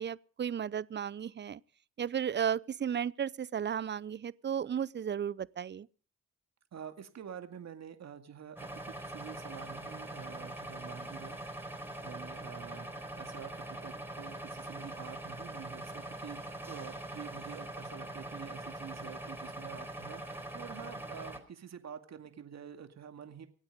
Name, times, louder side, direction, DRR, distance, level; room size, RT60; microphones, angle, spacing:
voice 1, 0.0-1.6 2.0-5.9, right 8 dB, 35° right, 0.6 m, -34 dB
voice 2, 6.7-11.4 12.0-23.5, right 8 dB, 55° right, 2.2 m, -48 dB
sound 1, 8.6-21.4, right 1 dB, 5° right, 4.4 m, -43 dB
24.5 x 8.8 x 5.2 m
hypercardioid pair, 50°, 33 cm